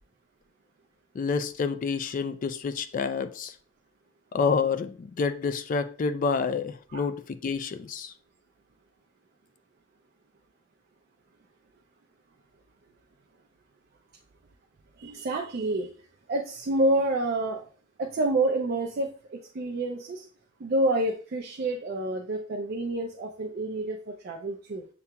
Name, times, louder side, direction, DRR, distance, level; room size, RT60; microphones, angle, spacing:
voice 1, 1.2-3.5 4.3-8.1, left 5 dB, 45° left, 0.3 m, -28 dB
voice 2, 15.0-15.9 16.3-17.6 18.0-20.3 20.6-24.9, right 2 dB, 50° right, 0.4 m, -28 dB
6.8 x 2.8 x 2.2 m
head